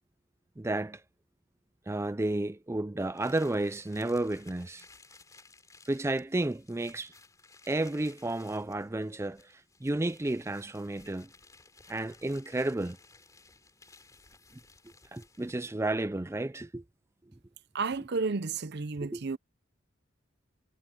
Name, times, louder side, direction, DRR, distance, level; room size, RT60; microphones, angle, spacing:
voice 1, 0.6-1.0 1.9-4.8 5.9-7.1 7.6-11.3 11.9-13.0 15.1-16.8 19.0-19.2, right 2 dB, 15° right, 0.4 m, -32 dB
sound 1, 3.1-15.7, left 3 dB, 15° left, 3.3 m, -58 dB
voice 2, 17.7-19.4, right 4 dB, 55° right, 0.7 m, -32 dB
head